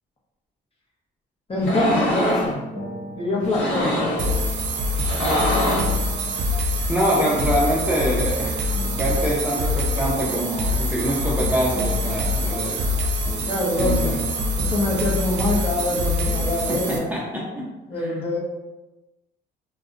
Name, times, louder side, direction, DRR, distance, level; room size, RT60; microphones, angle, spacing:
sound 1, 1.5-16.7, equal, 75° left, 1.0 m, -37 dB
voice 1, 1.5-2.6 3.1-4.3 5.2-5.6 13.4-14.1 14.6-17.1 17.9-18.4, left 1 dB, 30° left, -3 dB, 0.7 m, -25 dB
sound 2, 1.6-2.5 3.4-4.3 4.9-6.0, left 1 dB, 90° left, 0.7 m, -23 dB
sound 3, 4.2-17.0, left 1 dB, 60° right, 0.4 m, -25 dB
voice 2, 6.9-8.6 8.9-13.0 13.8-14.2 16.7-17.7 18.0-18.1, equal, 10° right, -5 dB, 0.5 m, -24 dB
2.6 x 2.1 x 2.4 m, 1.1 s
cardioid pair, 90°, 20 cm